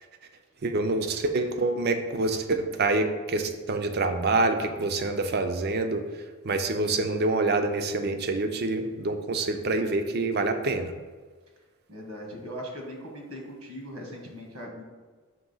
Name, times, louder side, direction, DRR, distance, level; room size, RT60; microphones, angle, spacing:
voice 1, 0.6-6.0 6.4-10.9, right 2 dB, 45° right, 7 dB, 0.5 m, -26 dB
voice 2, 11.9-14.8, equal, 85° right, 1 dB, 1.3 m, -39 dB
6.0 x 3.1 x 5.4 m, 1.4 s
head